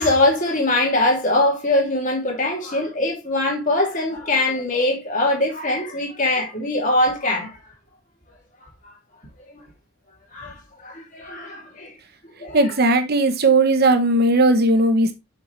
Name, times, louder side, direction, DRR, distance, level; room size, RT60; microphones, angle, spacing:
voice 1, 0.0-7.5 10.3-10.5 10.8-11.9 12.4-12.6, left 2 dB, 35° left, 2.9 m, -22 dB
voice 2, 12.5-15.1, right 2 dB, 45° right, 1.0 m, -17 dB
7.9 x 5.7 x 3.2 m
head